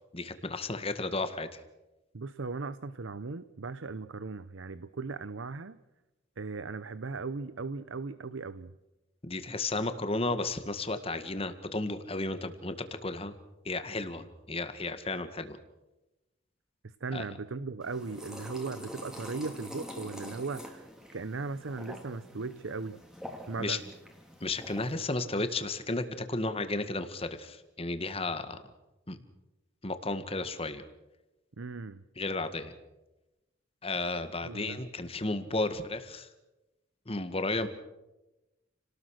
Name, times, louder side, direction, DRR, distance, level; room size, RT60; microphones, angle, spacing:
voice 1, 0.1-1.5 9.2-12.7 13.0-13.3 13.7-15.6 17.1-17.2 23.6-23.8 24.4-28.6 29.1-29.2 29.8-30.8 32.2-32.7 33.8-36.3 37.1-37.7, left 2 dB, 30° left, 10 dB, 1.8 m, -33 dB
voice 2, 2.1-5.8 6.4-8.7 17.0-23.0 23.5-23.8 31.6-32.0 34.4-34.8, right 4 dB, 80° right, 14 dB, 0.7 m, -38 dB
sound 1, 17.8-24.9, left 1 dB, 5° right, 2.9 m, -46 dB
30.0 x 19.0 x 6.5 m, 1.0 s
head